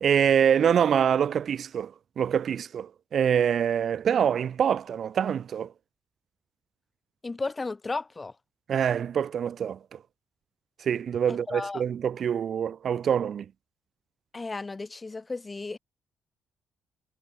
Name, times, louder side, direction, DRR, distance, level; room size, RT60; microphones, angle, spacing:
voice 1, 0.0-5.7 8.7-10.0 10.8-13.5, right 8 dB, 60° right, 0.5 m, -25 dB
voice 2, 7.2-8.3 11.3-11.8 14.3-15.8, left 3 dB, 25° left, 1.2 m, -34 dB
cardioid pair, 90°, 0 cm